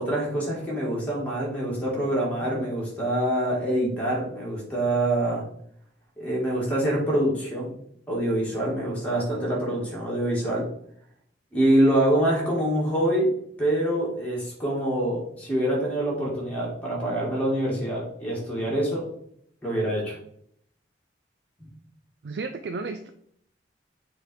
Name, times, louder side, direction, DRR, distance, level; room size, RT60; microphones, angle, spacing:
voice 1, 0.0-5.4 6.2-7.7 8.1-10.6 11.5-13.3 13.6-19.0 19.6-20.2 21.6-21.7, right 1 dB, 10° left, -4 dB, 2.0 m, -25 dB
voice 2, 22.2-23.1, right 3 dB, 70° right, 7 dB, 0.4 m, -33 dB
7.0 x 3.3 x 4.4 m, 0.68 s
head